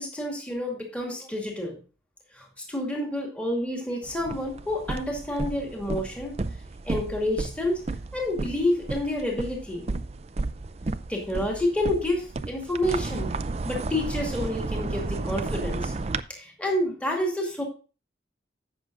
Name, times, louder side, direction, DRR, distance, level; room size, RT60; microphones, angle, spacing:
voice 1, 0.0-1.8 2.3-6.3 6.9-7.8 8.1-9.9 11.1-13.3 13.6-15.9 16.3-17.6, left 1 dB, 5° left, -1 dB, 2.3 m, -29 dB
sound 1, 4.0-16.2, right 3 dB, 35° right, 0.4 m, -33 dB
16.0 x 6.5 x 2.5 m, 0.35 s
head